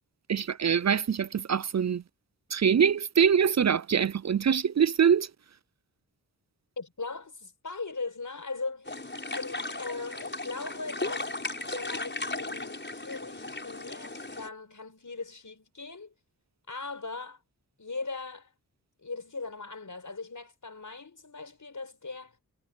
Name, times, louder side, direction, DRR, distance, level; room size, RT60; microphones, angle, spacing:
voice 1, 0.3-2.0 2.5-5.3, right 7 dB, 45° right, 0.5 m, -24 dB
voice 2, 6.8-9.0 9.3-11.3 11.7-16.1 16.7-17.4 17.8-18.5 19.0-22.4, left 3 dB, 50° left, 5.9 m, -39 dB
sound 1, 8.9-14.5, left 2 dB, 30° left, 6.3 m, -36 dB
wide cardioid pair, 80°, 38 cm